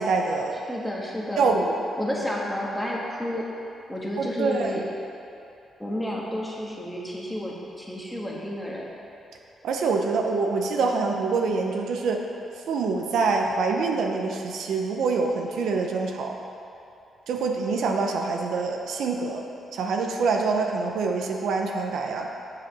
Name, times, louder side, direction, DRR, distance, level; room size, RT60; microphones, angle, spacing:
voice 1, 0.0-0.6 1.4-1.8 4.2-4.8 9.6-12.2 12.7-16.4 17.3-19.4 19.7-22.3, right 4 dB, 80° right, 2 dB, 0.7 m, -25 dB
voice 2, 0.7-1.5 2.0-3.5 3.9-4.8 5.8-8.9, left 1 dB, ahead, -4 dB, 1.4 m, -31 dB
7.5 x 4.9 x 6.2 m, 2.8 s
cardioid pair, 105°, 0 cm